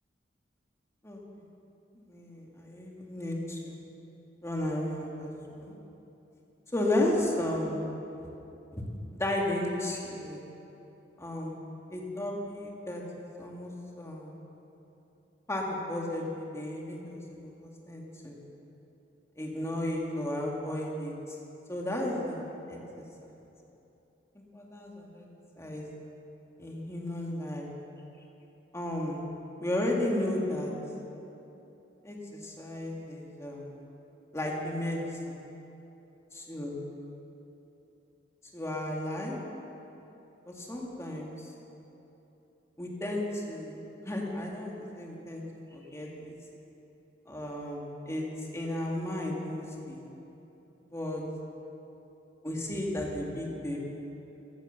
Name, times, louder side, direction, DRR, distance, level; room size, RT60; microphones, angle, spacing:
voice 1, 1.0-1.5 2.1-3.8 4.4-5.7 6.7-7.9 8.7-8.8 9.2-10.4 11.2-11.6 11.9-13.0 13.4-14.4 15.5-18.4 19.4-21.1 21.7-22.8 24.5-25.3 25.6-25.8 26.6-27.7 28.7-29.2 29.6-30.7 32.0-33.8 34.3-35.3 36.5-36.8 38.5-39.4 40.5-41.5 42.8-43.8 44.1-45.4 45.7-46.3 47.3-48.2 48.5-50.1 50.9-51.2 52.4-53.8, left 1 dB, 15° left, -2 dB, 2.1 m, -34 dB
15.5 x 11.0 x 6.8 m, 3.0 s
head